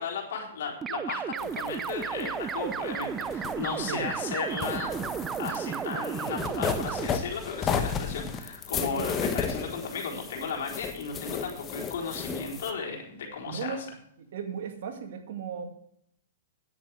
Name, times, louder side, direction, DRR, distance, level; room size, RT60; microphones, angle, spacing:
voice 1, 0.0-13.8, left 5 dB, 70° left, 0 dB, 4.0 m, -35 dB
sound 1, 0.8-7.1, right 7 dB, 20° right, 0.4 m, -33 dB
sound 2, 1.4-4.2 4.5-12.7, left 6 dB, 20° left, 1.0 m, -34 dB
voice 2, 8.9-9.3 13.5-13.8 14.2-15.6, right 7 dB, 65° right, 3 dB, 2.4 m, -36 dB
10.0 x 8.4 x 6.3 m, 0.67 s
hypercardioid pair, 145°, 0 cm